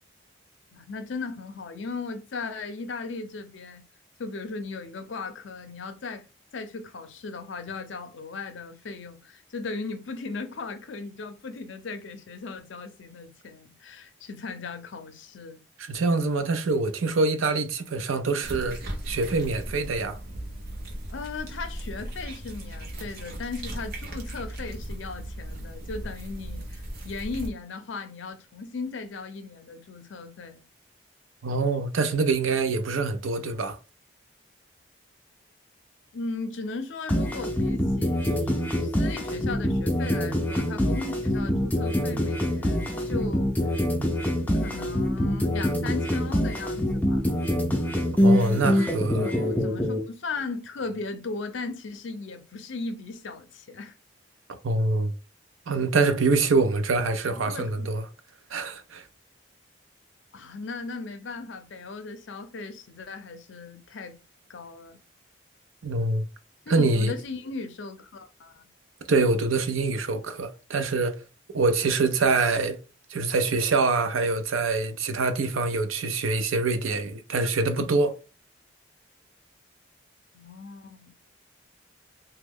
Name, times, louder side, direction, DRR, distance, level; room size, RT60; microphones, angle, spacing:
voice 1, 0.7-3.9 4.2-6.2 6.5-15.6 21.1-30.6 36.1-43.8 44.5-47.2 49.2-53.9 57.3-57.9 60.3-64.2 64.5-65.0 66.7-68.7 80.3-81.1, left 4 dB, 70° left, 0.5 m, -37 dB
voice 2, 15.9-18.8 19.0-20.2 31.4-33.8 48.2-49.3 54.6-55.1 55.7-58.1 58.5-59.0 65.8-66.3 66.7-67.1 69.1-71.2 71.5-72.8 73.1-78.1, right 3 dB, 90° right, 0.5 m, -25 dB
sound 1, 18.4-27.5, right 1 dB, 50° right, 0.8 m, -37 dB
sound 2, 37.1-50.0, equal, 10° left, 0.4 m, -25 dB
3.0 x 2.2 x 3.5 m
head